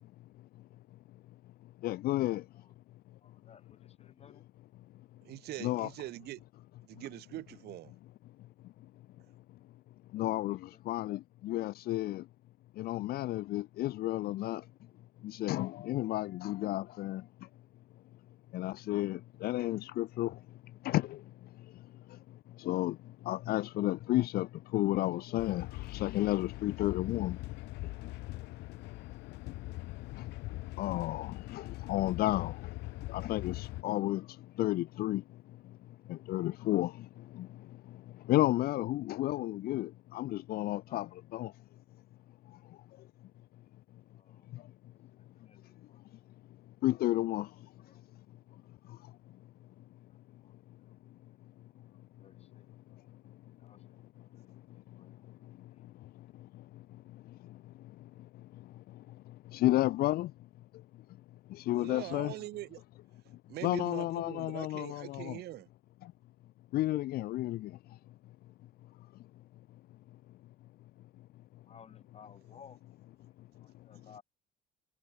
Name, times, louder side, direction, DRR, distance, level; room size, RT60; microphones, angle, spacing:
voice 1, 1.8-2.4 5.6-5.9 10.1-10.6 10.9-12.2 12.8-14.6 15.2-17.2 18.5-20.3 20.8-21.2 22.6-23.0 23.3-24.5 24.7-27.4 30.2-30.3 30.8-32.6 33.1-34.2 34.6-35.2 36.1-36.9 37.4-37.5 38.3-41.0 41.3-41.5 46.8-47.5 59.5-60.3 61.6-62.3 63.6-65.4 66.7-67.7, left 16 dB, 65° left, 0.5 m, -31 dB
voice 2, 3.2-4.5 10.7-10.8 13.4-13.5 40.9-41.2 44.1-44.5 45.1-46.6 47.8-48.0 50.0-51.0 51.3-51.4 51.7-51.9 52.2-52.7 53.6-57.2 57.5-57.7 71.5-72.8 73.3-74.2, left 6 dB, 40° left, 7.8 m, -60 dB
voice 3, 5.2-6.4 6.8-7.9 61.8-62.8 63.5-65.7, right 16 dB, 70° right, 0.9 m, -43 dB
sound 1, 25.4-33.8, left 20 dB, 90° left, 1.3 m, -42 dB
cardioid pair, 110°, 17 cm